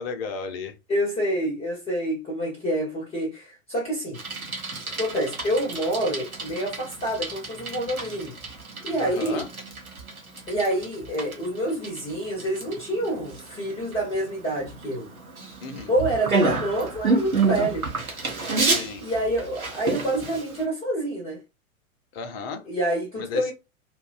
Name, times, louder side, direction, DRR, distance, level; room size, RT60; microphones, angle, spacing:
voice 1, 0.0-0.8 9.0-9.5 15.6-15.9 18.6-19.0 22.1-22.7 23.2-23.5, left 4 dB, 45° left, 0.7 m, -34 dB
voice 2, 0.9-4.2 4.9-8.3 8.8-9.4 10.5-15.1 15.9-17.9 19.0-21.4 22.7-23.5, right 1 dB, 15° left, 0.9 m, -27 dB
Bicycle, 4.1-20.6, right 3 dB, 90° right, 0.9 m, -30 dB
3.0 x 2.1 x 2.4 m
figure-of-eight pair, 100°, 42 cm